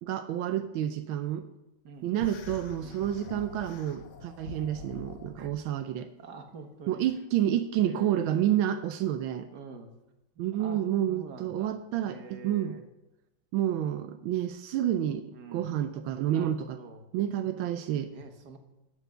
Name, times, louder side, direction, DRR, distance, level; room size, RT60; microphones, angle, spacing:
voice 1, 0.0-1.4 2.0-6.1 6.9-9.5 10.4-12.8 13.5-16.8 17.1-18.1, right 11 dB, 85° right, 9 dB, 1.4 m, -29 dB
sound 1, 2.2-5.6, left 6 dB, 70° left, 1.3 m, -45 dB
voice 2, 6.2-7.0 7.8-8.6 9.5-9.9 10.4-11.7 12.0-12.9 15.3-15.8 16.3-17.1 18.1-18.6, right 4 dB, 55° right, 5 dB, 1.8 m, -46 dB
12.5 x 7.5 x 6.6 m, 0.96 s
omnidirectional pair, 2.2 m